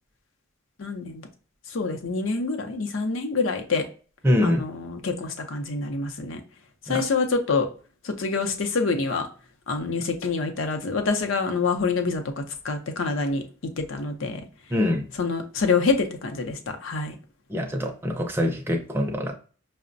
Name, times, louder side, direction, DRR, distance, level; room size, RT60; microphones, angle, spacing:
voice 1, 0.8-1.3 1.7-3.8 4.4-6.4 6.9-7.7 8.0-9.3 9.7-13.4 13.8-14.4 15.2-17.1, left 4 dB, 70° left, 0.6 m, -26 dB
voice 2, 4.2-4.6 6.9-7.0 14.7-15.0 17.5-19.3, left 1 dB, 10° right, 0.4 m, -24 dB
5.7 x 2.1 x 2.5 m
head